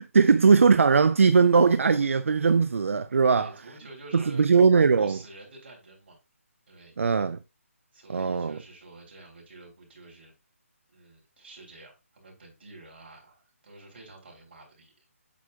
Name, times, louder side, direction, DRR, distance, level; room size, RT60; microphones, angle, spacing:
voice 1, 0.0-3.5 4.1-5.2 7.0-7.4 8.1-8.6, right 5 dB, 60° right, 0.4 m, -20 dB
voice 2, 3.2-4.5 5.0-6.2 6.7-6.9 7.9-10.3 10.9-14.9, right 2 dB, 45° right, 3.4 m, -48 dB
8.3 x 6.0 x 2.3 m
hypercardioid pair, 175°, 8 cm